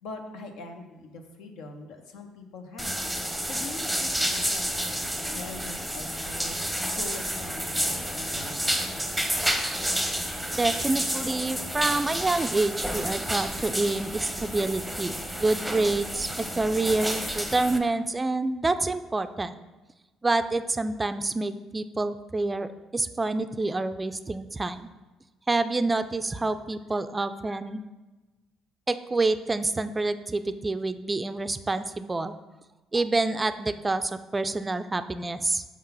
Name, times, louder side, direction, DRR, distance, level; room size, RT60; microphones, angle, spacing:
voice 1, 0.0-3.0 3.4-6.6 6.9-9.0, left 3 dB, 75° left, 5 dB, 0.7 m, -43 dB
sound 1, 2.8-17.8, equal, ahead, 0.7 m, -30 dB
voice 2, 10.5-19.6 20.2-24.9 25.5-27.8 28.9-32.3 32.9-35.6, right 2 dB, 20° right, 11 dB, 0.3 m, -27 dB
4.7 x 3.7 x 5.6 m, 1.2 s
supercardioid pair, 65°, 0 cm